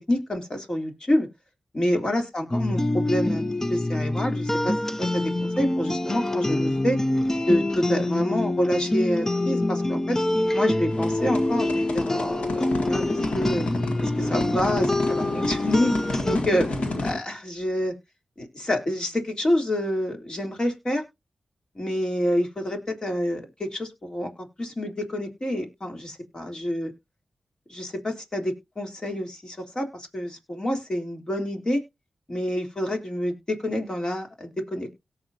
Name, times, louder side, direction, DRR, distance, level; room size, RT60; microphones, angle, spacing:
voice 1, 0.1-1.3 1.7-7.0 7.5-10.2 10.5-13.7 14.0-16.7 17.0-17.9 18.4-21.0 21.7-24.3 24.6-26.9 27.7-31.8 32.3-34.9, left 1 dB, 40° left, 3 dB, 3.5 m, -27 dB
sound 1, 2.5-16.4, left 1 dB, 25° left, 0.6 m, -26 dB
sound 2, 10.9-17.2, left 2 dB, 75° left, 1.9 m, -30 dB
18.0 x 6.4 x 2.8 m, 0.24 s
cardioid pair, 50°, 2 cm